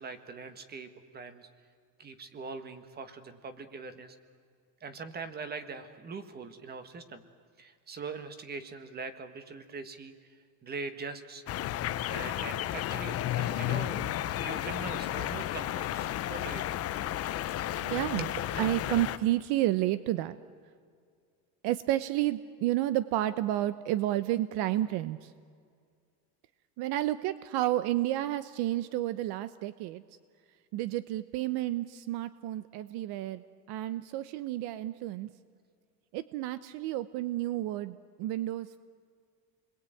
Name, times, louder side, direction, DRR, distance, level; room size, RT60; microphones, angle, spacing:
voice 1, 0.0-1.5 2.0-4.2 4.8-7.2 7.6-11.4 12.1-14.1 14.4-16.8 18.2-18.3, right 4 dB, 25° right, 10 dB, 1.7 m, -42 dB
sound 1, 11.5-19.2, left 12 dB, 35° left, 0.8 m, -33 dB
voice 2, 17.8-18.3 18.6-20.4 21.6-25.3 26.8-30.0 30.7-35.3 36.1-38.8, right 14 dB, 70° right, 14 dB, 0.9 m, -31 dB
29.5 x 21.5 x 9.1 m, 2.2 s
cardioid pair, 180°, 41 cm